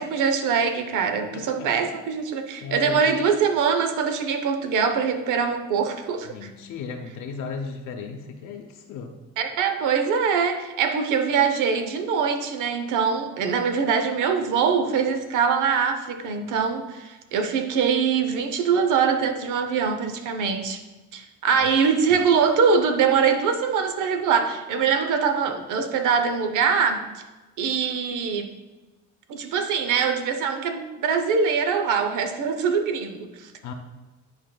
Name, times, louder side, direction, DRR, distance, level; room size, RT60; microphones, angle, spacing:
voice 1, 0.0-6.3 9.4-20.8 21.1-27.1 27.6-28.5 29.3-33.5, right 6 dB, 85° right, 7 dB, 0.7 m, -23 dB
voice 2, 1.3-1.7 2.6-3.0 6.3-9.1 21.5-21.7 33.6-33.7, left 5 dB, 80° left, 2 dB, 0.8 m, -35 dB
11.0 x 4.3 x 2.3 m, 1.2 s
cardioid pair, 90°, 30 cm